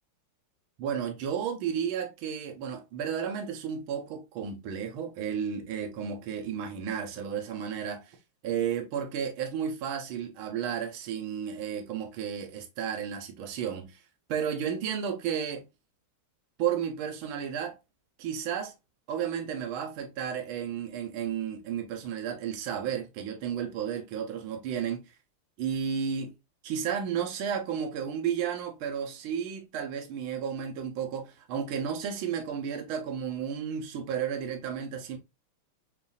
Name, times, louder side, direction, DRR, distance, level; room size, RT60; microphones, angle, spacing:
voice 1, 0.8-8.2 8.4-14.0 14.3-15.7 16.6-17.8 18.2-18.7 19.1-25.0 25.6-26.3 26.6-35.2, right 8 dB, 70° right, 1.7 m, -33 dB
7.1 x 2.6 x 2.3 m
omnidirectional pair, 2.4 m